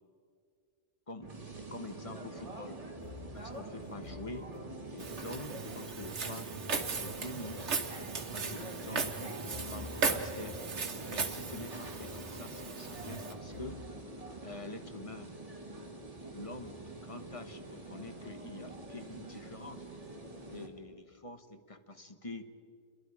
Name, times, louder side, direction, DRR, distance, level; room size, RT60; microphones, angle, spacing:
sound 1, 1.2-20.7, right 2 dB, 30° right, 2.1 m, -46 dB
voice 1, 1.6-2.8 3.3-4.5 4.9-6.5 7.0-10.6 11.1-13.8 14.4-15.3 16.3-19.9 20.5-22.4, left 2 dB, 30° left, 7 dB, 1.3 m, -46 dB
sound 2, 3.0-14.2, left 2 dB, 75° left, 4.2 m, -51 dB
Walk footsteps, 5.0-13.3, right 4 dB, 75° right, 1.7 m, -37 dB
28.5 x 22.5 x 4.9 m, 2.3 s
omnidirectional pair, 1.2 m